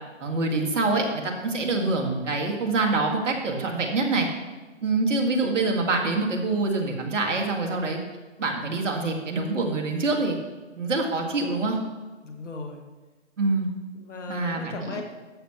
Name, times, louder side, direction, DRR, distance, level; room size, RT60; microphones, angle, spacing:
voice 1, 0.2-4.3 4.8-8.0 8.4-10.4 10.8-11.8 13.4-13.7 14.3-15.0, right 3 dB, 75° right, 1 dB, 2.1 m, -25 dB
voice 2, 12.2-12.8 13.9-15.0, left 3 dB, 75° left, 3 dB, 1.9 m, -38 dB
13.0 x 7.2 x 3.0 m, 1.3 s
hypercardioid pair, 145°, 37 cm